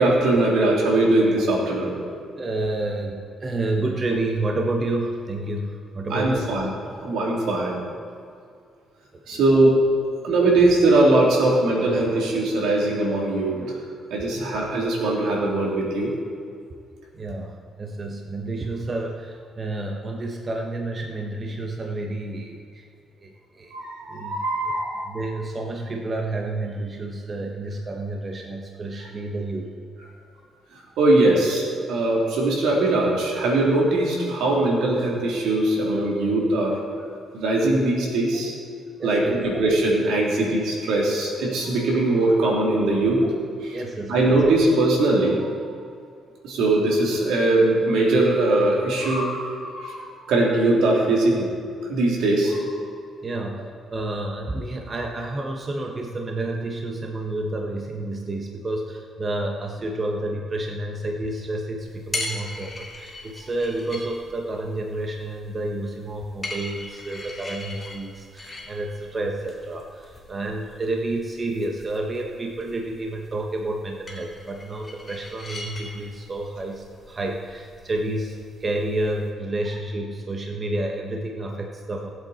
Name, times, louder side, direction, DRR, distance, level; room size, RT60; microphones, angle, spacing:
voice 1, 0.0-1.9 6.1-6.7 7.0-7.8 9.3-9.8 10.2-13.8 14.1-16.1 23.7-25.1 29.0-29.1 31.0-36.8 37.3-38.5 39.0-43.2 43.6-43.8 44.1-45.6 46.4-51.5 51.8-52.7, right 2 dB, 85° right, -2 dB, 3.0 m, -21 dB
voice 2, 2.4-6.4 9.3-9.4 17.1-22.8 23.2-23.7 24.1-24.4 25.1-29.7 39.0-39.3 43.7-44.3 53.2-82.1, right 2 dB, 35° right, 2 dB, 1.1 m, -30 dB
sound 1, 61.8-79.3, left 2 dB, 25° left, 3.7 m, -40 dB
19.0 x 8.0 x 4.2 m, 2.3 s
cardioid pair, 90°, 0 cm